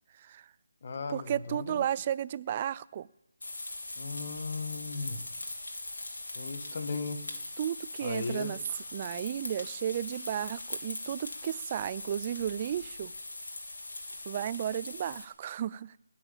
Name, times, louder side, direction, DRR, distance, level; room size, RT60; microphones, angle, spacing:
voice 1, 0.2-0.5 1.1-3.1 7.6-8.6 8.9-13.1 14.3-16.0, right 10 dB, 30° right, 20 dB, 0.4 m, -33 dB
voice 2, 0.8-1.8 4.0-5.2 6.3-7.2 8.0-8.6, left 4 dB, 45° left, 8 dB, 1.7 m, -36 dB
sound 1, 3.4-15.2, left 2 dB, 80° left, 3.2 m, -41 dB
sound 2, 6.5-12.9, right 1 dB, 5° right, 6.9 m, -62 dB
20.0 x 7.2 x 7.3 m, 0.92 s
figure-of-eight pair, 160°, 0 cm